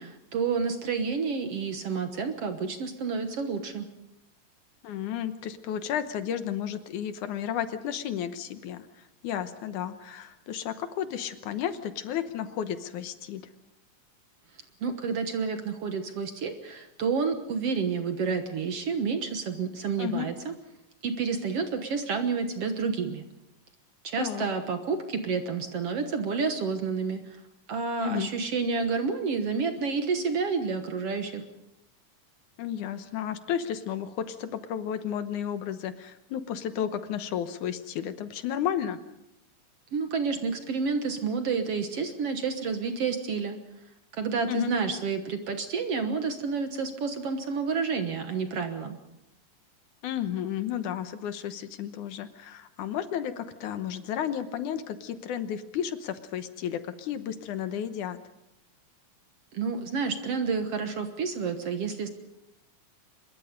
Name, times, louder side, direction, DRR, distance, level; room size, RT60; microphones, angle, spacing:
voice 1, 0.0-3.9 14.8-20.5 21.0-23.2 24.0-27.4 27.7-31.4 39.9-43.6 44.1-49.0 59.5-62.1, right 5 dB, 55° right, 7 dB, 1.9 m, -29 dB
voice 2, 4.8-13.5 20.0-20.3 24.2-24.4 28.0-28.3 32.6-39.0 44.5-44.7 50.0-58.2, left 9 dB, 70° left, 10 dB, 2.4 m, -33 dB
25.0 x 22.0 x 5.3 m, 0.85 s
omnidirectional pair, 3.8 m